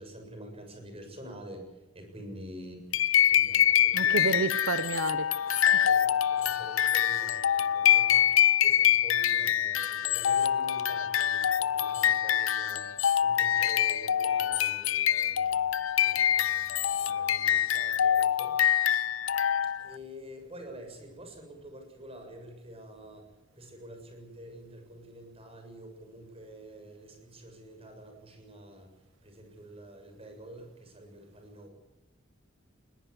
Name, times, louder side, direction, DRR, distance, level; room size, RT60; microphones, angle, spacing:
voice 1, 0.0-2.8 3.2-4.5 5.6-19.0 19.8-31.7, right 1 dB, 30° right, 5 dB, 7.1 m, -48 dB
sound 1, 2.9-20.0, left 10 dB, 85° left, 0.7 m, -25 dB
voice 2, 3.9-5.7, right 3 dB, 80° right, 11 dB, 1.1 m, -31 dB
21.0 x 20.0 x 8.3 m, 1.1 s
head